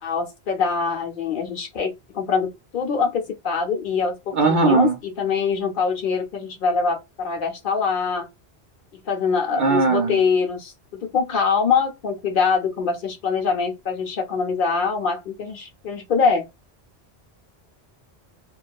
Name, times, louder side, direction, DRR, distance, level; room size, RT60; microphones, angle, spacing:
voice 1, 0.0-8.3 9.1-16.5, left 5 dB, 60° left, 0.7 m, -24 dB
voice 2, 4.3-5.0 9.5-10.2, right 4 dB, 60° right, 0.6 m, -19 dB
2.3 x 2.2 x 2.5 m
omnidirectional pair, 1.1 m